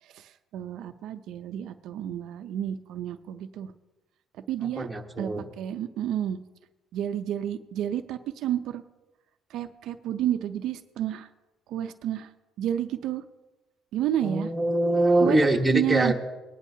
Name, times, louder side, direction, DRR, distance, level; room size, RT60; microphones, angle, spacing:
voice 1, 0.0-3.7 4.5-4.9 5.2-5.3 5.6-6.4 6.9-8.8 9.5-11.3 11.7-12.3 12.6-13.2 13.9-14.5 15.2-15.4 15.7-16.1, right 11 dB, 70° right, 7 dB, 0.5 m, -30 dB
voice 2, 4.8-5.5 14.2-16.1, right 2 dB, 10° right, 1 dB, 1.1 m, -23 dB
20.0 x 9.8 x 2.7 m, 1.1 s
cardioid pair, 120°, 0 cm